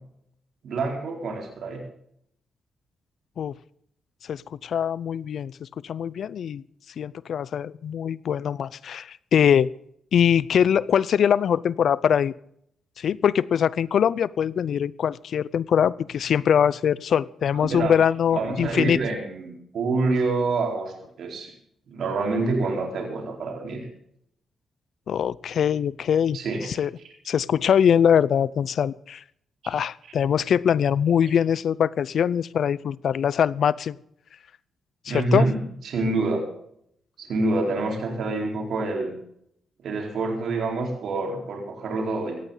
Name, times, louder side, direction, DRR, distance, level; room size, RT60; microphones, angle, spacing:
voice 1, 0.6-1.8 17.5-18.0 18.3-21.5 21.9-23.9 26.3-26.6 35.1-35.6 35.8-36.4 37.2-39.2 39.8-42.3, right 3 dB, 70° right, 1 dB, 4.2 m, -27 dB
voice 2, 4.2-6.6 7.0-9.7 10.1-12.3 13.0-19.0 25.1-26.9 27.3-29.2 29.7-34.0 35.0-35.5, left 8 dB, 65° left, 20 dB, 0.6 m, -22 dB
17.5 x 14.5 x 4.0 m, 0.70 s
cardioid pair, 100°, 0 cm